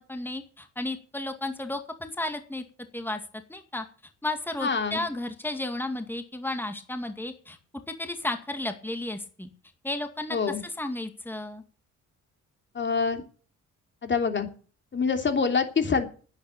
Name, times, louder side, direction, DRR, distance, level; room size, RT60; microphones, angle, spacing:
voice 1, 0.0-2.6 2.9-3.2 3.5-3.9 4.2-7.6 7.9-9.5 9.8-11.6, left 2 dB, 5° left, 7 dB, 2.2 m, -33 dB
voice 2, 4.6-5.0 10.3-10.6 12.7-13.2 14.0-14.5 14.9-16.1, left 5 dB, 40° left, 6 dB, 3.2 m, -25 dB
10.5 x 10.0 x 9.0 m, 0.39 s
cardioid pair, 90°, 30 cm